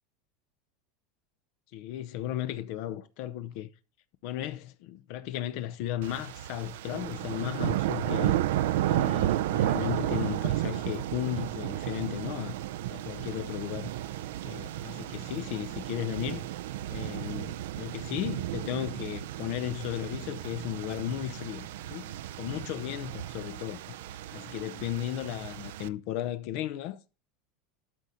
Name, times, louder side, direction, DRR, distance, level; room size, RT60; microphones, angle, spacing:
voice 1, 1.7-3.7 4.2-8.4 8.9-12.5 12.9-13.9 14.4-16.5 16.9-23.9 24.3-27.0, left 12 dB, 55° left, 0.6 m, -35 dB
sound 1, 6.0-25.9, right 13 dB, 80° right, 0.5 m, -33 dB
12.0 x 4.3 x 5.1 m
supercardioid pair, 160°, 0 cm